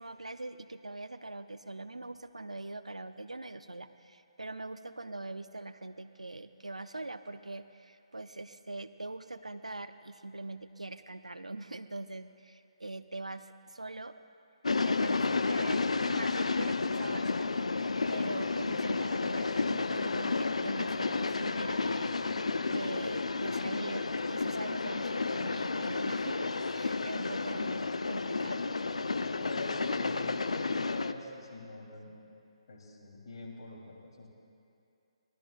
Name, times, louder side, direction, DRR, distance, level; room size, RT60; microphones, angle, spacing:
voice 1, 0.0-14.2 14.8-17.5 18.1-28.7, right 2 dB, 90° right, 11 dB, 0.5 m, -43 dB
sound 1, 14.6-31.1, left 3 dB, 75° left, 0.5 m, -31 dB
voice 2, 29.2-32.2 32.7-34.3, left 3 dB, 55° left, -1 dB, 3.1 m, -44 dB
25.0 x 18.5 x 2.4 m, 2.6 s
figure-of-eight pair, 140°, 3 cm